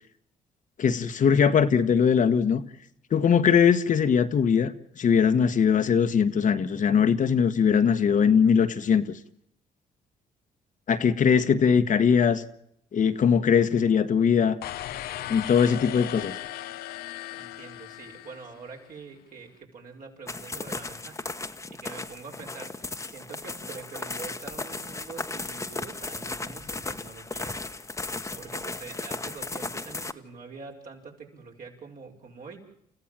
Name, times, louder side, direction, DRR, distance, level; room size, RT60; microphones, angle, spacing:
voice 1, 0.8-2.6 3.1-9.2 10.9-12.4 12.9-14.6 15.3-16.4, left 7 dB, 55° left, 1.3 m, -21 dB
sound 1, 14.6-18.8, left 13 dB, 75° left, 0.8 m, -37 dB
voice 2, 17.3-21.2 21.7-27.6 28.3-32.6, right 4 dB, 60° right, 5.6 m, -45 dB
sound 2, 20.3-30.1, left 3 dB, 20° left, 1.3 m, -36 dB
29.0 x 15.0 x 7.5 m
supercardioid pair, 70°, 16 cm